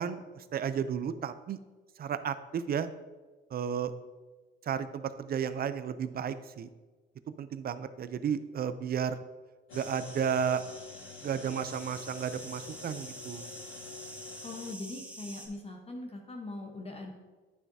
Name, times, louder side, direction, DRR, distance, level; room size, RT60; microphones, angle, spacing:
voice 1, 0.0-1.6 2.0-2.9 3.5-3.9 4.7-6.7 7.4-9.2 9.7-10.6 11.2-13.5, right 7 dB, 50° right, 12 dB, 0.5 m, -33 dB
sound 1, 9.7-14.8, left 8 dB, 80° left, 0.4 m, -49 dB
sound 2, 9.7-15.5, right 1 dB, 5° right, 1.4 m, -47 dB
voice 2, 14.4-17.1, left 2 dB, 30° left, 2 dB, 0.9 m, -41 dB
9.7 x 5.8 x 2.7 m, 1.3 s
cardioid pair, 90°, 20 cm